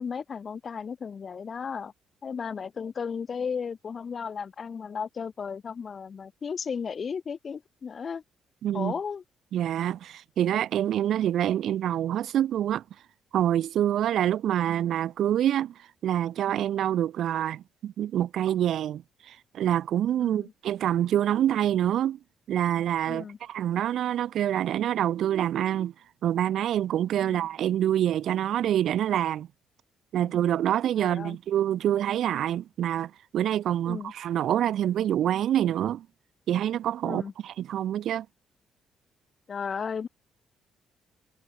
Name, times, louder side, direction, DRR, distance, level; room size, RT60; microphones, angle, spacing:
voice 1, 0.0-1.9 2.2-8.2 8.7-9.2 20.2-20.5 23.1-23.4 27.2-27.5 30.2-30.3 31.0-31.4 33.9-34.1 37.0-37.3 39.5-40.1, left 6 dB, 45° left, 0.7 m, -35 dB
voice 2, 8.6-8.9 9.5-12.8 13.3-15.7 16.0-22.2 22.5-25.9 26.2-29.5 30.1-36.1 36.5-38.3, right 11 dB, 75° right, 0.3 m, -26 dB
cardioid pair, 90°, 0 cm